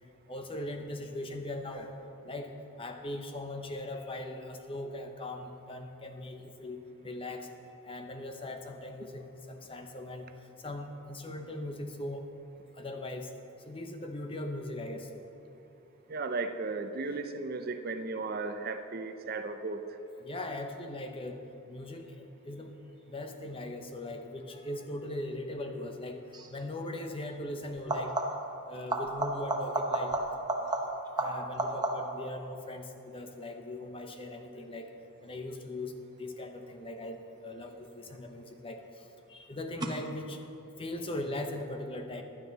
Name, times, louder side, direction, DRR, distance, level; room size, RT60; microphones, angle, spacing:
voice 1, 0.3-1.9 2.2-2.5 2.8-6.8 7.0-7.5 7.8-10.3 10.6-12.2 12.8-13.3 13.7-15.2 17.0-17.2 20.2-21.4 21.7-22.7 23.1-26.2 26.5-28.1 28.7-30.1 31.2-34.9 35.2-35.9 36.2-38.8 39.3-40.4 40.8-42.2, left 1 dB, 25° left, 5 dB, 0.9 m, -39 dB
voice 2, 16.1-19.8, right 3 dB, 45° right, 8 dB, 0.6 m, -35 dB
sound 1, 26.3-26.6 27.8-28.6 28.9-32.3 37.7-38.3 39.8-39.9, right 2 dB, 20° right, 1.0 m, -33 dB
15.5 x 11.5 x 4.1 m, 2.8 s
head